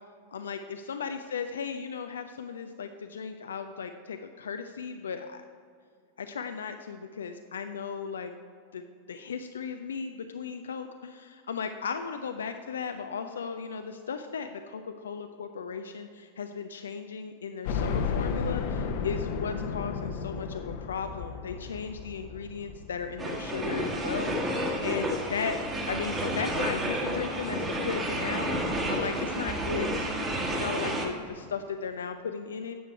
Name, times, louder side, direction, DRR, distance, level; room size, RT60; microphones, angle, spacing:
voice 1, 0.3-5.4 6.2-8.3 8.7-8.8 9.1-25.6 25.9-32.7, left 6 dB, 65° left, 8 dB, 0.4 m, -36 dB
sound 1, 17.7-26.6 27.0-27.1 27.5-27.6 28.8-28.9 29.2-29.3, left 5 dB, 50° left, 0.8 m, -34 dB
sound 2, 23.2-31.1, equal, 20° right, 1.5 m, -30 dB
10.0 x 7.3 x 4.5 m, 2.2 s
figure-of-eight pair, 90°, 0 cm